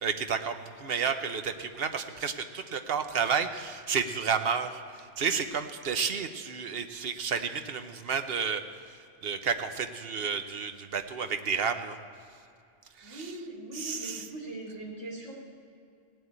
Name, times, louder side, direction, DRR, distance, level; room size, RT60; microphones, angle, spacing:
voice 1, 0.0-12.0 13.0-13.3 13.7-14.3, right 6 dB, 55° right, 8 dB, 1.0 m, -31 dB
voice 2, 13.0-15.3, right 1 dB, 75° right, -2 dB, 3.4 m, -40 dB
17.0 x 7.9 x 8.7 m, 2.4 s
omnidirectional pair, 1.3 m